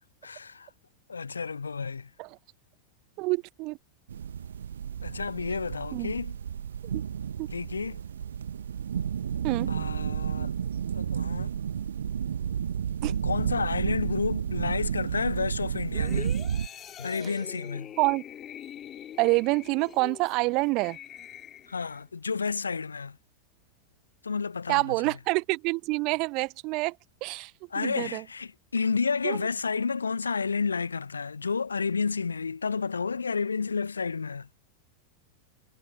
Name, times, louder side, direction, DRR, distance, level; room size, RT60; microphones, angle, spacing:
voice 1, 0.2-0.7 1.1-2.1 5.0-6.3 7.5-8.0 9.7-10.5 10.9-11.5 13.1-16.4 17.0-17.9 21.7-23.2 24.2-25.0 27.7-34.5, left 5 dB, 75° left, 0.9 m, -31 dB
voice 2, 3.2-3.8 5.9-6.1 6.8-6.9 7.4-7.5 9.4-9.7 13.0-13.1 18.0-18.2 19.2-21.0 24.7-26.9 27.2-27.5 27.8-28.2 29.2-29.4, right 25 dB, 40° right, 1.4 m, -27 dB
sound 1, 4.1-16.7, right 8 dB, 65° right, 1.6 m, -31 dB
sound 2, 15.9-22.0 22.5-22.6, left 10 dB, 30° left, 3.6 m, -44 dB
figure-of-eight pair, 90°, 0 cm